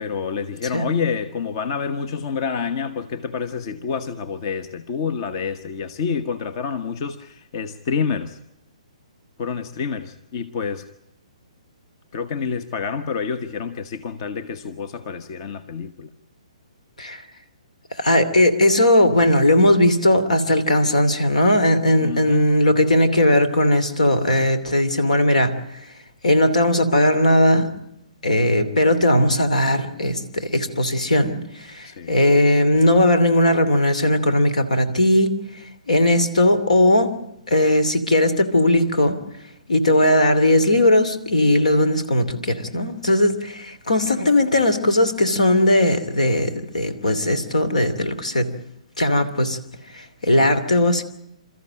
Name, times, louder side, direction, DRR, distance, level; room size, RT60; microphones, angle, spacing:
voice 1, 0.0-8.4 9.4-10.8 12.1-16.1 22.0-22.5 31.9-32.2, left 6 dB, 45° left, 11 dB, 1.1 m, -28 dB
voice 2, 18.0-25.6 26.2-27.7 28.2-35.4 35.9-37.1 37.5-39.2 39.7-48.5 49.0-49.6 49.9-51.0, left 1 dB, 80° left, 11 dB, 2.8 m, -18 dB
28.5 x 14.0 x 8.8 m, 0.83 s
figure-of-eight pair, 130°, 4 cm